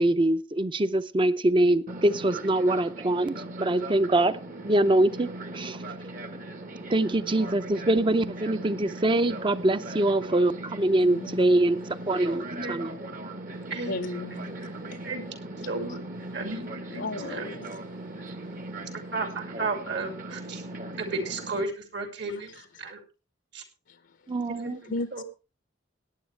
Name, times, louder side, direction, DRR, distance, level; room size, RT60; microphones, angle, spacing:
voice 1, 0.0-4.4 4.6-5.3 5.6-5.8 6.9-11.8 12.1-12.9 24.3-24.8, right 1 dB, 25° right, 13 dB, 0.6 m, -24 dB
Fixed-wing aircraft airplane, 1.9-21.6, right 2 dB, 45° right, 1.3 m, -39 dB
voice 2, 10.8-11.4 13.8-14.5 14.9-15.0 16.9-17.7 22.3-22.4 23.9-24.0 24.8-25.2, left 2 dB, 65° left, 11 dB, 0.7 m, -35 dB
voice 3, 12.2-12.9 13.7-14.0 14.5-14.8 15.0-15.2 15.7-16.0 16.3-17.0 17.3-17.5 19.1-20.6 21.0-23.0 23.5-23.6 24.6-25.2, right 3 dB, 65° right, 6 dB, 2.8 m, -34 dB
17.5 x 9.6 x 3.3 m, 0.30 s
head